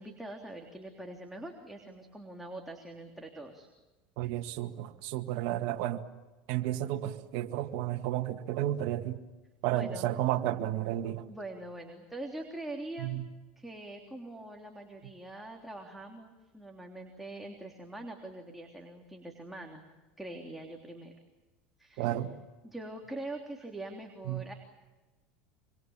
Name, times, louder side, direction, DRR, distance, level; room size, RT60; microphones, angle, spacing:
voice 1, 0.0-3.7 9.7-10.2 11.3-13.2 13.5-19.9 20.2-21.1 21.8-22.2 22.6-24.5, right 1 dB, 5° right, 0 dB, 3.4 m, -43 dB
voice 2, 4.2-6.0 6.5-9.2 9.6-11.2 13.0-13.3 22.0-22.3 24.3-24.4, right 13 dB, 65° right, 6 dB, 1.9 m, -32 dB
26.0 x 25.5 x 7.4 m, 1.2 s
supercardioid pair, 100°, 5 cm